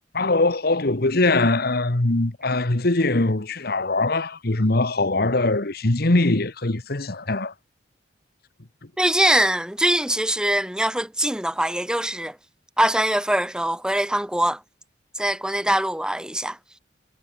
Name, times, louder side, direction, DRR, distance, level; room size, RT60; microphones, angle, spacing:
voice 1, 0.1-7.5, left 2 dB, 55° left, 1.5 m, -22 dB
voice 2, 9.0-12.4 12.8-14.6 15.2-16.6, right 1 dB, 5° right, 1.8 m, -22 dB
head